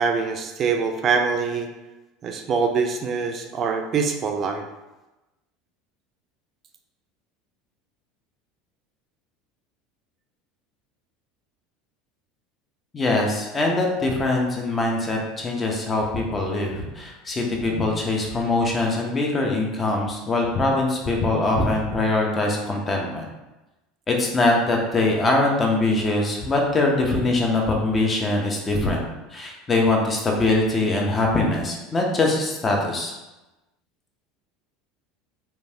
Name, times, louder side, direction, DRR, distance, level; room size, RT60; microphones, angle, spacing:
voice 1, 0.0-1.7 2.2-4.6, right 5 dB, 40° right, 4 dB, 0.4 m, -24 dB
voice 2, 12.9-23.3 24.1-29.1 29.3-33.1, left 2 dB, 25° left, 0 dB, 0.7 m, -22 dB
3.0 x 2.3 x 2.7 m, 1.0 s
hypercardioid pair, 75°, 0 cm